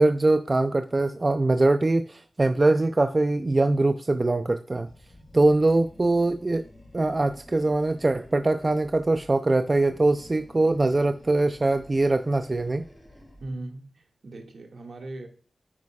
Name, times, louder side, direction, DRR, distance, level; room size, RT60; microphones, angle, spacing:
voice 1, 0.0-4.9 5.3-6.6 6.9-12.8, right 2 dB, 30° right, 0.4 m, -22 dB
Animal, 4.8-9.3 9.6-13.6, left 1 dB, 20° left, 3.0 m, -50 dB
voice 2, 13.4-15.3, right 2 dB, 65° right, 1.8 m, -39 dB
9.5 x 9.5 x 2.3 m
wide cardioid pair, 130°, 0 cm